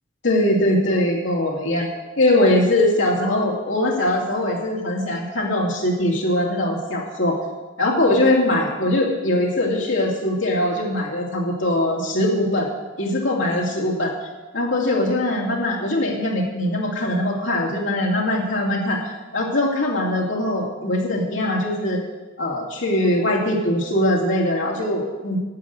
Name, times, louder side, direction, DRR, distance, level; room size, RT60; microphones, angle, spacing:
voice 1, 0.2-1.9 2.2-7.4 7.8-12.7 13.0-14.1 14.5-22.0 22.4-25.4, left 1 dB, 75° left, -2 dB, 2.7 m, -21 dB
10.5 x 6.7 x 9.2 m, 1.2 s
head